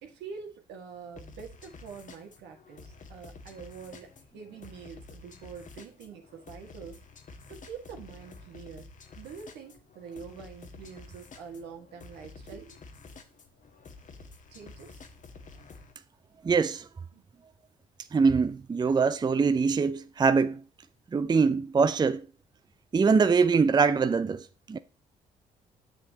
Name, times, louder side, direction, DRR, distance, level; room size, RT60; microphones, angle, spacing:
voice 1, 0.0-7.0 7.5-8.9 9.2-12.8 14.5-15.0 17.1-17.2, right 6 dB, 80° right, 1.9 m, -45 dB
sound 1, 1.2-15.9, left 3 dB, 50° left, 1.3 m, -50 dB
voice 2, 16.4-16.9 18.1-20.6 21.1-22.2 22.9-24.8, right 5 dB, 25° right, 0.5 m, -23 dB
7.6 x 7.4 x 2.9 m
supercardioid pair, 60°, 17 cm